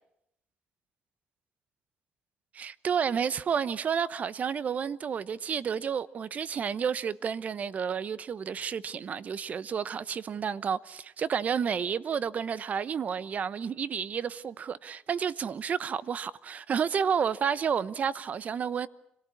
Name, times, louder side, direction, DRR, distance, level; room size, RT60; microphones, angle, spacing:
voice 1, 2.5-18.9, right 7 dB, 45° right, 0.9 m, -31 dB
26.0 x 18.0 x 9.7 m
cardioid pair, 95°, 3 cm